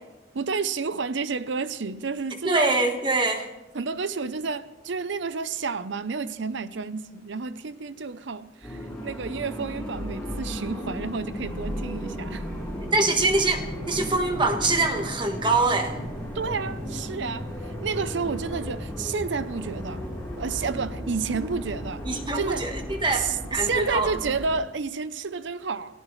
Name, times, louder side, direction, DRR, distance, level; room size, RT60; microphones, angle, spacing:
voice 1, 0.3-2.8 3.7-12.5 16.3-20.0 20.4-22.0 22.3-22.7 23.1-26.0, right 5 dB, 65° right, 0.6 m, -30 dB
voice 2, 2.4-3.5 12.9-16.0 22.0-24.1, right 2 dB, 25° right, 1.4 m, -24 dB
sound 1, 8.6-24.6, equal, 5° left, 4.6 m, -35 dB
28.0 x 15.5 x 3.2 m
head